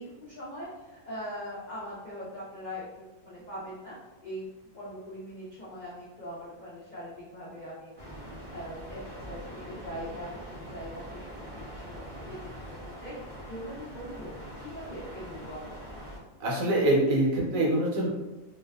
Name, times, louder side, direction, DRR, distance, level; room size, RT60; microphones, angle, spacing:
voice 1, 0.0-9.0 9.3-12.4 12.7-15.8, equal, 70° left, -8 dB, 0.4 m, -42 dB
sound 1, 8.0-16.2, equal, 35° right, 0.5 m, -43 dB
voice 2, 16.4-18.1, right 1 dB, 70° right, -3 dB, 1.1 m, -24 dB
2.6 x 2.2 x 2.3 m, 1.1 s
omnidirectional pair, 1.6 m